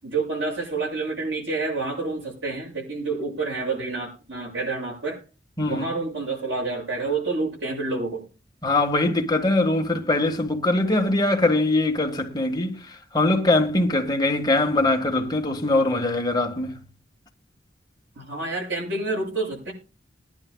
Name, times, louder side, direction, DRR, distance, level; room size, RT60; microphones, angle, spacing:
voice 1, 0.0-5.2 5.7-8.3 18.2-19.7, right 3 dB, 85° right, 7.3 m, -28 dB
voice 2, 8.6-16.8, left 2 dB, 25° left, 1.7 m, -22 dB
21.5 x 10.5 x 2.3 m
head